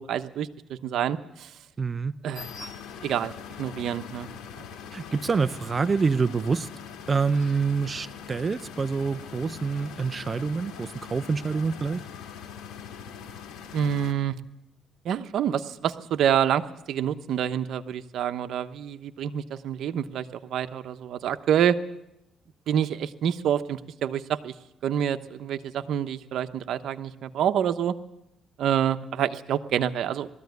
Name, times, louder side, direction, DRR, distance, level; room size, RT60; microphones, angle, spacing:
voice 1, 0.0-1.5 2.2-2.7 3.0-3.3 3.6-4.3 4.6-4.7 13.7-14.3 15.0-21.8 22.7-24.5 24.8-27.9 28.6-30.3, right 9 dB, 75° right, 9 dB, 1.1 m, -27 dB
voice 2, 1.8-2.1 4.9-6.7 7.1-12.1, right 5 dB, 35° right, 13 dB, 0.7 m, -26 dB
sound 1, 2.3-14.1, left 7 dB, 85° left, 2.4 m, -42 dB
20.0 x 14.0 x 9.5 m, 0.85 s
cardioid pair, 90°, 0 cm